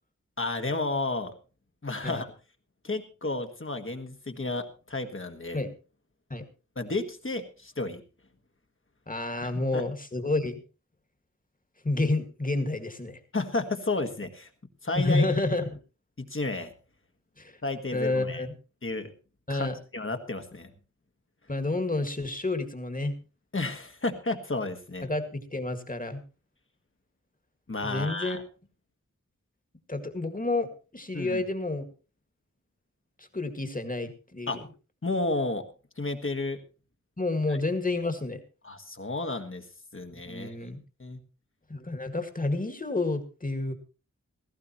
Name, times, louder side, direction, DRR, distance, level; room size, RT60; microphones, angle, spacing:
voice 1, 0.4-1.4 1.8-2.3 2.8-5.6 6.8-8.0 9.4-9.8 13.3-14.5 14.8-15.3 16.2-16.7 17.6-18.4 18.8-19.1 19.5-19.7 19.9-20.7 23.5-25.1 27.7-28.4 31.1-31.4 34.5-34.6 35.0-35.6 36.0-36.6 38.6-39.7 39.9-40.5 41.0-41.2, left 2 dB, 45° left, 5 dB, 1.7 m, -32 dB
voice 2, 9.1-10.6 11.8-13.2 15.0-15.8 17.4-17.6 17.9-18.5 19.5-19.8 21.5-23.1 25.0-26.2 27.8-28.4 29.9-31.8 33.2-34.7 37.2-38.4 40.1-40.8 41.7-43.7, left 2 dB, 25° left, 7 dB, 2.0 m, -29 dB
17.0 x 14.5 x 3.1 m, 0.33 s
wide cardioid pair, 50°, 30 cm